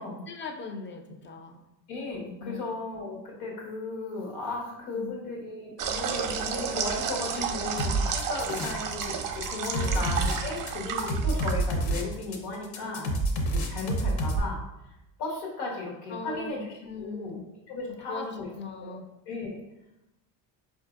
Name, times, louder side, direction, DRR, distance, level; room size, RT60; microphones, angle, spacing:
voice 1, 0.0-1.7 2.4-2.7 4.9-5.1 7.3-8.1 9.7-10.0 12.8-13.2 16.1-17.4 17.9-19.1, left 3 dB, 25° left, 6 dB, 0.4 m, -40 dB
voice 2, 1.9-13.1 13.5-14.6 15.2-16.7 17.0-17.4 17.7-18.5 18.8-19.0 19.3-19.6, left 3 dB, 85° left, -1 dB, 1.2 m, -35 dB
sound 1, 5.8-12.0, right 6 dB, 50° right, 0.5 m, -32 dB
sound 2, 7.8-9.1 9.3-14.4, right 2 dB, 55° left, 0.7 m, -28 dB
4.2 x 2.6 x 2.4 m, 0.92 s
supercardioid pair, 90°, 44 cm